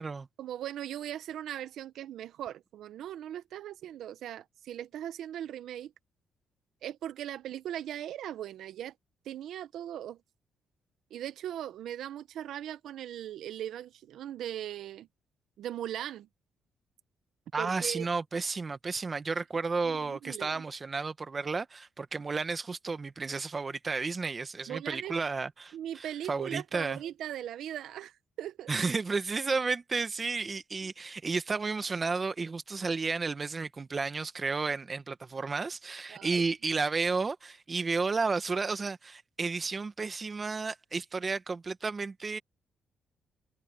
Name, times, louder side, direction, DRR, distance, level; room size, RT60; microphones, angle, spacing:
voice 1, 0.4-5.9 6.8-8.9 9.2-10.2 11.1-15.1 15.6-16.3 17.6-18.1 19.8-20.6 24.7-25.1 25.7-28.7 30.8-30.9 36.1-36.4, right 11 dB, 75° right, 1.0 m, -39 dB
voice 2, 17.5-27.0 28.7-42.4, right 4 dB, 30° right, 1.7 m, -32 dB
cardioid pair, 90°, 0 cm